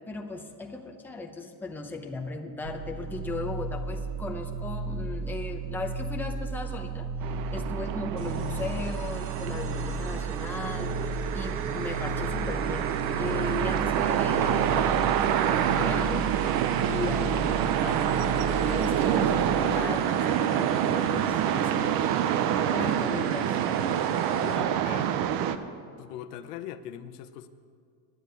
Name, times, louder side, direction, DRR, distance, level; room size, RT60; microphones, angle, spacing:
voice 1, 0.1-11.0 11.3-16.3 16.8-18.4 18.6-21.8 22.7-23.6, left 3 dB, 5° left, 2 dB, 0.8 m, -37 dB
sound 1, 2.6-19.4, right 4 dB, 75° right, 1.8 m, -34 dB
sound 2, 7.2-25.6, right 10 dB, 50° right, 0.7 m, -27 dB
voice 2, 7.6-8.0 14.3-14.6 24.3-25.1 26.0-27.5, left 10 dB, 90° left, 10 dB, 0.9 m, -41 dB
sound 3, 8.2-24.6, right 4 dB, 25° right, 1.1 m, -42 dB
10.5 x 8.4 x 9.3 m, 2.1 s
supercardioid pair, 135°, 46 cm